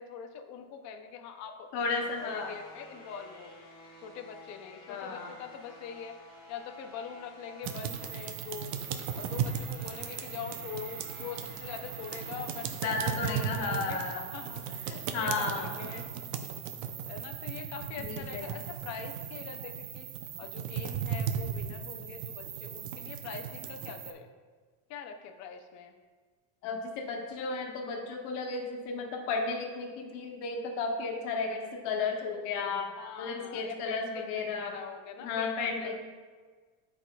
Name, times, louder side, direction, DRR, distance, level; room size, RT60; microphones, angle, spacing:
voice 1, 0.0-1.7 2.2-3.6 4.0-8.7 9.1-16.1 17.1-24.3 24.9-25.9 33.0-36.0, left 7 dB, 40° left, 5 dB, 0.5 m, -43 dB
voice 2, 1.7-2.5 4.9-5.3 12.8-14.3 15.1-15.7 18.0-18.4 26.6-32.9 33.2-34.8 35.2-36.0, left 4 dB, 65° left, 1 dB, 1.2 m, -33 dB
sound 1, 1.8-16.1, left 1 dB, 10° left, 1.5 m, -53 dB
sound 2, 7.6-24.1, right 8 dB, 65° right, 0.7 m, -37 dB
12.0 x 4.9 x 2.2 m, 1.5 s
cardioid pair, 175°, 46 cm